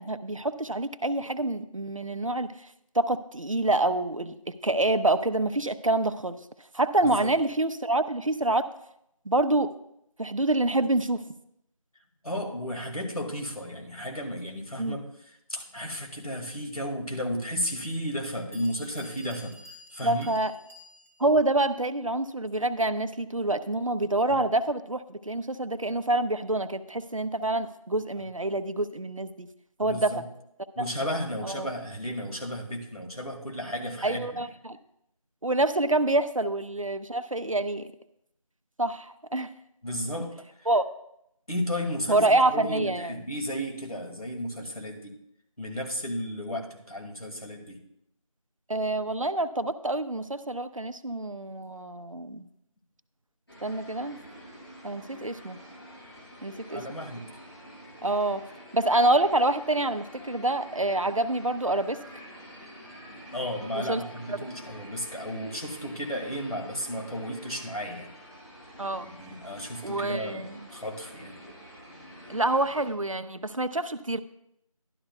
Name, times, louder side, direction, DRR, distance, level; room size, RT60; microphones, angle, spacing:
voice 1, 0.0-2.5 2.9-6.4 6.7-8.7 9.3-9.7 10.2-11.2 14.8-15.0 20.0-20.5 21.2-29.5 29.8-30.2 31.4-31.7 34.0-34.8 35.4-37.9 38.8-39.5 40.7-40.8 42.1-43.1 48.7-52.5 53.6-54.2 54.8-55.6 56.4-56.8 58.0-58.4 58.7-62.0 63.7-64.0 64.3-64.4 68.8-69.1 69.8-70.6 72.3-74.2, right 2 dB, 65° right, 11 dB, 0.6 m, -27 dB
voice 2, 7.0-7.3 12.2-19.5 19.9-20.3 29.8-30.2 30.8-34.4 39.8-40.3 40.6-40.7 41.5-45.1 45.6-47.8 56.7-57.3 63.3-68.1 69.0-71.4, equal, 80° left, 2 dB, 2.2 m, -34 dB
Bell, 18.1-18.2 18.5-21.3, left 1 dB, 20° left, 1.3 m, -51 dB
sound 1, 53.5-72.9, equal, 45° left, 4.2 m, -47 dB
12.0 x 11.5 x 2.3 m, 0.77 s
figure-of-eight pair, 175°, 18 cm